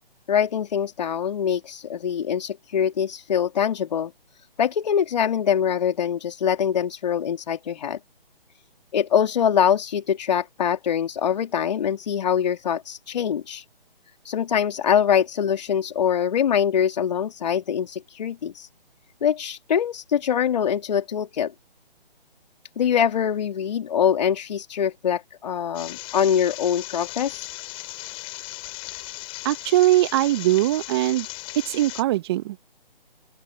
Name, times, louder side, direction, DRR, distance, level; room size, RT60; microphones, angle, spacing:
voice 1, 0.3-4.1 4.6-8.0 8.9-13.6 14.2-18.7 19.2-21.5 22.8-27.5, left 8 dB, 45° left, 3.0 m, -23 dB
sound 1, 25.7-32.0, left 22 dB, 20° left, 4.7 m, -37 dB
voice 2, 29.4-31.3 31.7-32.6, right 15 dB, 25° right, 1.5 m, -21 dB
open air
figure-of-eight pair, 145°, 29 cm